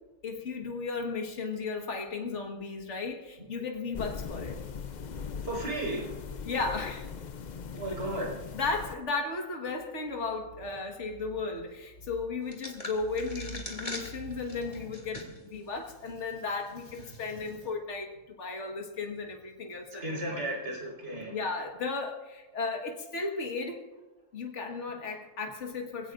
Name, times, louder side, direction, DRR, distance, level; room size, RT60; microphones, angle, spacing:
voice 1, 0.2-4.6 6.4-7.1 8.5-20.4 21.3-23.8 24.3-26.1, left 4 dB, 65° left, 2 dB, 1.9 m, -35 dB
sound 1, 3.9-9.0, left 6 dB, 45° left, 0.6 m, -40 dB
voice 2, 5.4-6.2 7.7-8.3 20.0-21.4, right 1 dB, 60° right, -2 dB, 5.0 m, -34 dB
sound 2, 12.5-15.5 15.9-16.0 16.8-17.2, left 2 dB, 30° left, 2.3 m, -42 dB
24.5 x 16.5 x 2.5 m, 1.1 s
omnidirectional pair, 1.3 m